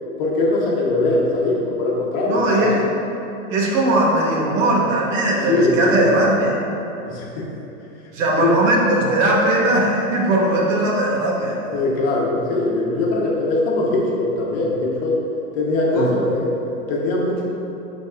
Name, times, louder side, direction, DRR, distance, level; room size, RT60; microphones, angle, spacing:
voice 1, 0.2-2.8 5.5-6.1 7.0-7.5 8.4-8.5 11.7-15.2 15.5-17.4, left 2 dB, 40° left, -3 dB, 1.2 m, -21 dB
voice 2, 2.2-2.8 3.5-6.6 8.1-11.8 15.9-16.1, right 1 dB, 60° right, -2 dB, 1.4 m, -19 dB
10.5 x 4.0 x 2.6 m, 2.9 s
hypercardioid pair, 140°, 44 cm